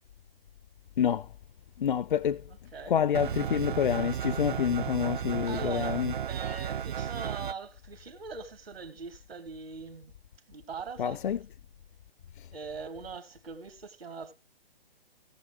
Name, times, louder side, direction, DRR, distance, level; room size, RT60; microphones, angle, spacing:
voice 1, 1.8-2.4 2.9-6.1 11.0-11.4, left 8 dB, 55° left, 0.5 m, -27 dB
sound 1, 3.1-7.5, right 9 dB, 55° right, 0.5 m, -34 dB
voice 2, 5.5-10.1 10.5-11.2 12.5-14.3, right 5 dB, 75° right, 2.5 m, -41 dB
18.0 x 7.0 x 3.2 m
hypercardioid pair, 150°, 30 cm